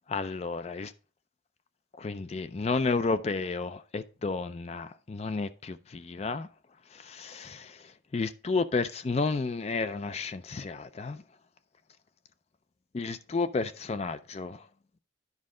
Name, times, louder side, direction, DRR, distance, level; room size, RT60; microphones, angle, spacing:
voice 1, 0.1-0.9 2.0-6.5 7.0-7.7 8.1-11.2 12.9-14.6, left 4 dB, 35° left, 0.3 m, -31 dB
9.7 x 5.2 x 3.7 m
head